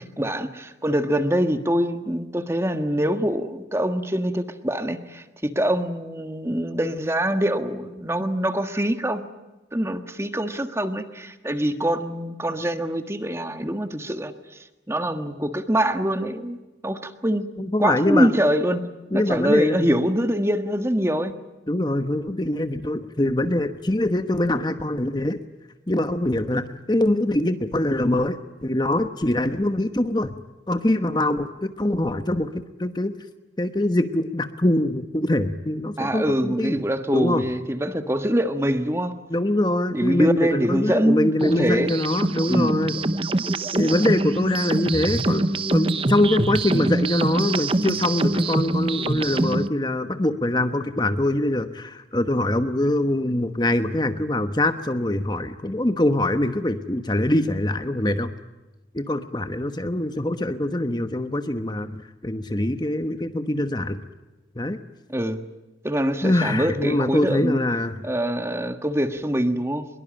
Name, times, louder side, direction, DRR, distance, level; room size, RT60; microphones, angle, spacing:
voice 1, 0.0-9.2 9.7-16.6 16.8-17.5 17.8-18.8 19.1-21.3 36.0-39.1 39.9-41.9 42.5-42.8 46.7-46.9 65.1-65.4 65.8-67.6 68.0-69.9, equal, 15° right, 8 dB, 1.5 m, -24 dB
voice 2, 17.6-18.3 19.1-19.8 21.7-25.4 25.9-30.3 30.7-32.5 32.8-33.1 33.6-36.8 37.1-37.4 39.3-43.0 43.7-58.3 58.9-64.0 64.6-64.8 66.2-67.9, left 1 dB, 25° left, 9 dB, 1.1 m, -23 dB
sound 1, 41.4-49.7, right 2 dB, 30° right, 0.8 m, -24 dB
23.5 x 22.5 x 8.8 m, 1.1 s
head